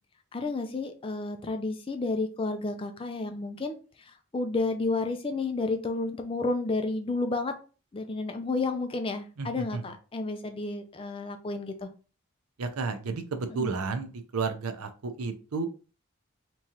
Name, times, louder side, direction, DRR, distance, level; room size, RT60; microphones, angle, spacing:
voice 1, 0.3-3.8 4.1-7.5 7.9-11.9 13.5-13.7, left 3 dB, 25° left, 6 dB, 0.4 m, -31 dB
voice 2, 9.4-9.8 12.6-15.7, right 4 dB, 90° right, 9 dB, 0.6 m, -32 dB
3.6 x 3.0 x 2.8 m, 0.35 s
head